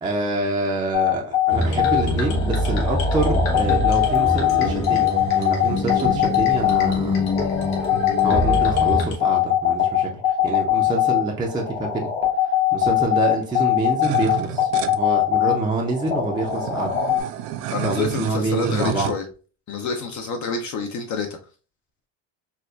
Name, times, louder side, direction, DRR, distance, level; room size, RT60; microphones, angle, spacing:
voice 1, 0.0-7.2 8.2-12.1 12.7-17.0 17.8-19.1, right 2 dB, 10° right, -1 dB, 0.4 m, -26 dB
sound 1, 0.9-17.2, left 12 dB, 70° left, 1.7 m, -21 dB
sound 2, 1.5-9.1, left 1 dB, 90° left, 1.2 m, -24 dB
sound 3, 14.0-15.0 15.7-15.8 16.0-19.1, right 11 dB, 80° right, 0.5 m, -31 dB
voice 2, 17.7-19.2 19.7-21.3, left 4 dB, 45° left, 4 dB, 0.5 m, -27 dB
4.3 x 2.3 x 2.3 m, 0.37 s
cardioid pair, 115°, 41 cm